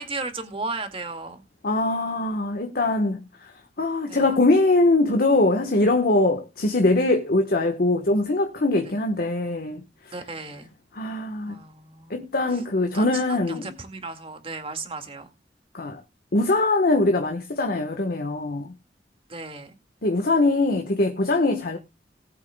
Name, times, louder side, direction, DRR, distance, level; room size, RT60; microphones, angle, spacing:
voice 1, 0.0-1.4 4.1-4.4 8.8-9.0 10.1-10.7 11.5-12.6 12.9-15.3 19.3-19.8, right 3 dB, 35° right, 2.0 m, -35 dB
voice 2, 1.6-9.8 10.9-11.6 12.1-13.7 15.7-16.0 16.3-18.7 20.0-21.8, left 2 dB, 55° left, 1.2 m, -22 dB
19.0 x 8.0 x 2.2 m
head